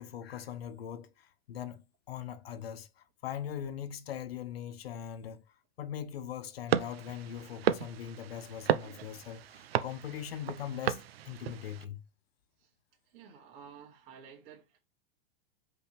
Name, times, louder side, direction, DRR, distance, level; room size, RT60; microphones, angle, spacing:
voice 1, 0.0-12.0, left 9 dB, 90° left, 1.0 m, -41 dB
sound 1, 6.7-11.8, right 11 dB, 85° right, 0.8 m, -34 dB
voice 2, 13.0-14.8, right 7 dB, 50° right, 2.6 m, -52 dB
5.4 x 3.9 x 5.1 m
hypercardioid pair, 130°, 29 cm